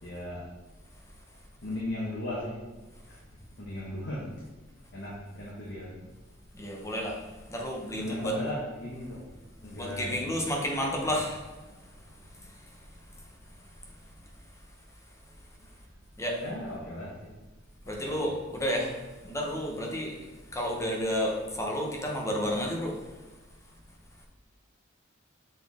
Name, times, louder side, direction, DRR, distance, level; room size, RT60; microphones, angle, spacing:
voice 1, 0.0-0.4 1.6-2.6 3.1-3.2 3.6-4.2 4.9-6.1 7.9-9.2 9.6-10.3 10.9-11.1 16.4-17.3 18.0-18.1, left 1 dB, 60° left, -6 dB, 1.3 m, -36 dB
voice 2, 6.6-7.2 7.5-8.4 9.7-11.4 16.2-16.4 17.9-18.9 19.2-20.1 20.5-22.9, equal, 15° left, -1 dB, 0.9 m, -31 dB
6.9 x 4.1 x 3.6 m, 1.2 s
head